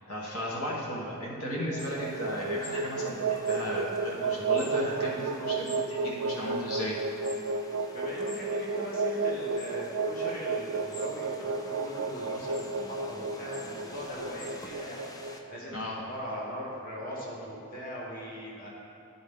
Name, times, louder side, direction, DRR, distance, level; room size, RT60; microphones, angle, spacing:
voice 1, 0.1-7.0 15.7-16.0, equal, 75° left, -4 dB, 1.2 m, -35 dB
sound 1, 1.6-15.9, right 4 dB, 70° right, 0.4 m, -32 dB
sound 2, 1.8-15.4, left 1 dB, 15° left, 0.3 m, -48 dB
voice 2, 7.9-15.0 15.5-18.7, equal, 40° left, -5 dB, 1.2 m, -40 dB
11.5 x 4.0 x 3.6 m, 2.6 s
head